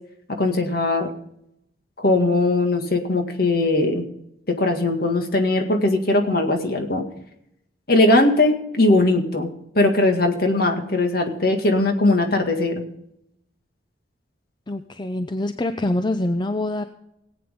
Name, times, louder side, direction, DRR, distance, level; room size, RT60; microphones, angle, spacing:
voice 1, 0.4-1.1 2.0-4.1 4.5-7.0 7.9-9.5 9.8-12.8, left 2 dB, 55° left, 4 dB, 1.9 m, -20 dB
voice 2, 14.7-16.8, left 1 dB, 25° left, 9 dB, 0.5 m, -25 dB
18.5 x 8.8 x 3.6 m, 0.79 s
head